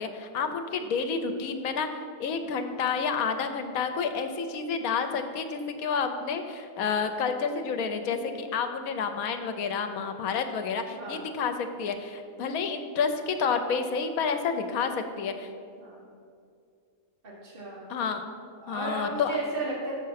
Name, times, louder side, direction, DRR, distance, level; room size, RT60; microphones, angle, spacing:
voice 1, 0.0-1.9 2.2-15.5 17.9-18.2 18.7-19.4, left 5 dB, 75° left, 7 dB, 1.1 m, -29 dB
voice 2, 11.0-11.3 15.8-16.1 17.2-17.9 18.6-19.9, right 2 dB, 40° right, -5 dB, 1.8 m, -34 dB
6.6 x 6.5 x 5.7 m, 2.3 s
omnidirectional pair, 1.5 m